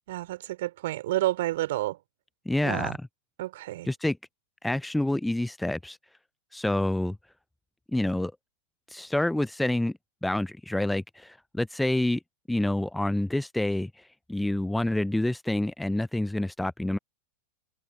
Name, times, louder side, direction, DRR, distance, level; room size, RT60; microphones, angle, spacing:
voice 1, 0.1-2.0 2.6-3.0 3.4-3.9, right 16 dB, 55° right, 4.1 m, -30 dB
voice 2, 2.5-3.0 3.9-4.2 4.6-6.0 6.5-7.2 7.9-8.3 8.9-9.9 10.2-12.2 12.5-14.0 14.3-17.0, left 1 dB, 5° left, 0.5 m, -27 dB
figure-of-eight pair, 90°, 0 cm